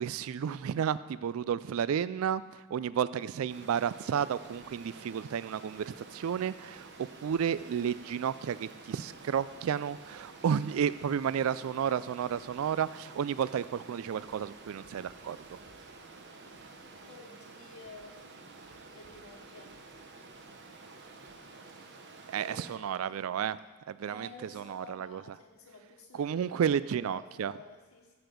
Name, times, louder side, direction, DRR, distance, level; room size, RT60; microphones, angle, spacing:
voice 1, 0.0-15.4 22.3-23.6 23.9-24.3 24.5-25.4 26.1-27.5, right 8 dB, 70° right, 17 dB, 0.3 m, -32 dB
Stream, 3.5-22.8, right 3 dB, 50° right, 1.1 m, -50 dB
voice 2, 17.1-18.2 18.9-19.8 22.4-23.3 24.0-28.2, left 2 dB, 75° left, -3 dB, 1.3 m, -51 dB
13.5 x 8.0 x 5.2 m, 1.3 s
head